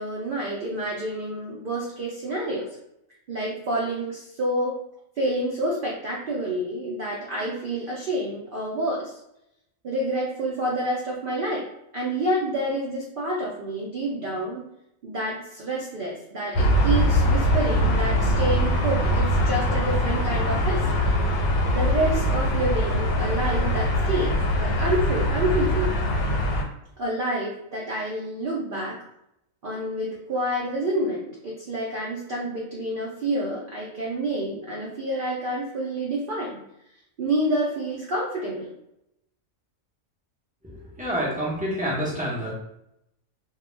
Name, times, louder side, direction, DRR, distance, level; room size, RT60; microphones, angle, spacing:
voice 1, 0.0-2.7 3.3-4.8 5.2-9.1 9.8-11.7 11.9-14.6 15.0-20.9 21.7-26.0 27.0-29.0 29.6-36.6 37.2-38.7, right 1 dB, 80° right, -3 dB, 0.4 m, -28 dB
sound 1, 16.5-26.6, equal, 90° left, 1.0 m, -22 dB
voice 2, 41.0-42.5, equal, 10° right, -7 dB, 0.4 m, -27 dB
2.2 x 2.2 x 3.1 m, 0.80 s
omnidirectional pair, 1.4 m